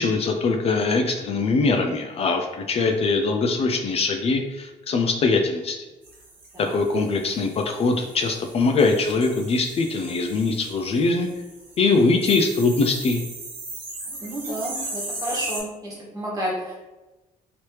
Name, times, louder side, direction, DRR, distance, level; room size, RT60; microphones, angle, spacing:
voice 1, 0.0-5.8 6.6-11.3 11.8-13.2, left 3 dB, 45° left, 3 dB, 0.4 m, -22 dB
sound 1, 6.0-15.6, right 2 dB, 75° right, 1.2 m, -38 dB
voice 2, 14.1-16.9, right 1 dB, 25° right, -5 dB, 1.4 m, -31 dB
3.2 x 2.9 x 3.0 m, 1.1 s
cardioid pair, 115°, 14 cm